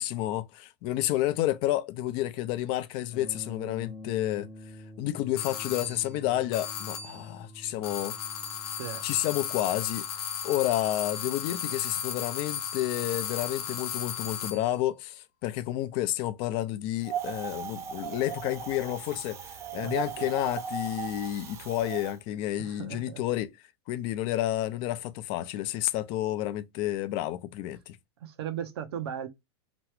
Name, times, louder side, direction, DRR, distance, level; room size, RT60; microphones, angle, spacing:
voice 1, 0.0-4.5 5.0-8.2 9.0-10.1 10.4-19.4 19.7-23.5 23.9-28.0, left 14 dB, 40° left, 0.4 m, -30 dB
sound 1, 3.1-13.2, left 1 dB, 10° left, 0.8 m, -48 dB
sound 2, 5.4-6.1 6.5-7.3 7.8-14.7, left 8 dB, 70° left, 0.8 m, -35 dB
Wind, 17.0-22.1, right 8 dB, 20° right, 0.4 m, -37 dB
voice 2, 19.8-20.3 22.6-23.2 28.2-29.3, right 9 dB, 70° right, 0.8 m, -37 dB
3.0 x 2.3 x 3.1 m
supercardioid pair, 145°, 14 cm